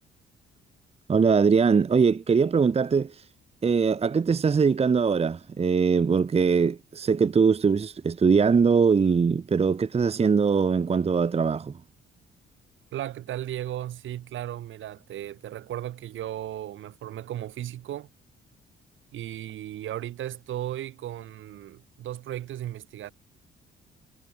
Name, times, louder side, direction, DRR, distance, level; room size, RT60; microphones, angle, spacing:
voice 1, 1.1-3.2 3.6-11.7, right 5 dB, 30° right, 1.0 m, -22 dB
voice 2, 12.9-18.1 19.1-23.1, right 12 dB, 75° right, 4.3 m, -35 dB
cardioid pair, 90°, 20 cm